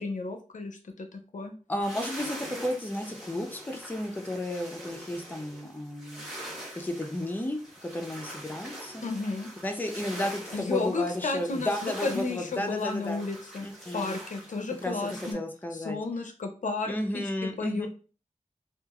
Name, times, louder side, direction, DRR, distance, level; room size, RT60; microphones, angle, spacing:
voice 1, 0.0-1.5 9.0-9.5 10.5-13.7 13.9-15.4 15.7-17.2 17.6-17.9, left 3 dB, 70° left, 5 dB, 0.5 m, -32 dB
voice 2, 1.7-6.3 6.8-9.0 9.6-10.4 10.7-13.2 13.6-14.2 14.8-15.0 15.3-16.0 16.9-17.9, left 1 dB, 15° left, 4 dB, 0.5 m, -33 dB
sound 1, 1.8-15.3, right 1 dB, 5° right, 1.1 m, -44 dB
2.9 x 2.3 x 2.3 m, 0.36 s
wide cardioid pair, 65°, 14 cm